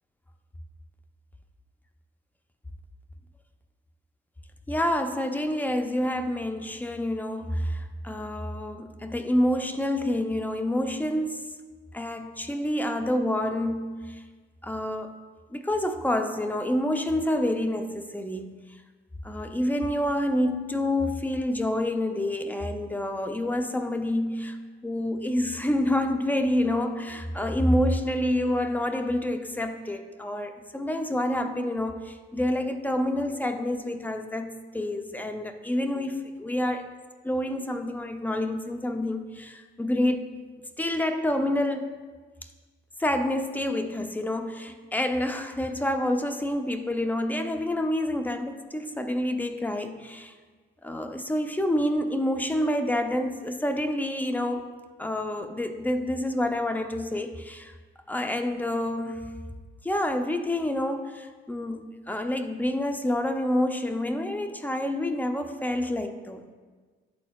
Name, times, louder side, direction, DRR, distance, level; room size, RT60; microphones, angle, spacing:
voice 1, 4.7-11.5 11.9-14.2 14.6-15.2 15.5-18.6 19.2-24.6 24.8-36.9 37.2-40.3 40.8-41.9 43.0-50.3 50.8-54.7 55.0-57.7 58.1-59.3 59.8-66.6, left 1 dB, 10° left, 7 dB, 0.5 m, -28 dB
10.5 x 4.2 x 2.3 m, 1.4 s
cardioid pair, 90°, 20 cm